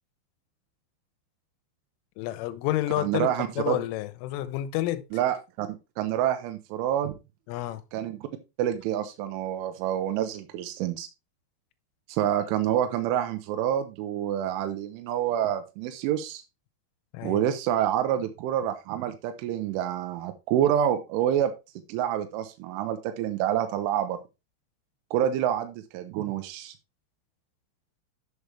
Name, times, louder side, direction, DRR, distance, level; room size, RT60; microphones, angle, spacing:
voice 1, 2.2-5.0 7.5-7.8 17.1-17.4, left 15 dB, 85° left, 3.2 m, -30 dB
voice 2, 3.0-3.8 5.1-7.2 7.9-8.2 8.6-11.1 12.1-16.4 17.2-21.5 21.9-24.2 25.1-26.7, right 10 dB, 85° right, 3.1 m, -27 dB
8.2 x 6.7 x 3.3 m
omnidirectional pair, 5.7 m